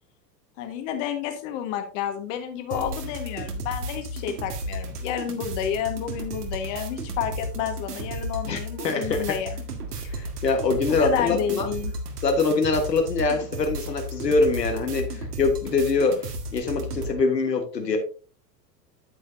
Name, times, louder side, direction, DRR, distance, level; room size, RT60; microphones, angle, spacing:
voice 1, 0.6-9.6 10.0-10.1 10.9-11.9, left 9 dB, 45° left, 6 dB, 1.6 m, -30 dB
sound 1, 2.7-17.1, right 1 dB, 65° right, 1.8 m, -34 dB
voice 2, 8.8-9.3 10.1-11.7 12.2-18.0, left 3 dB, 75° left, 4 dB, 1.5 m, -24 dB
9.1 x 8.6 x 2.6 m, 0.37 s
figure-of-eight pair, 90°, 50 cm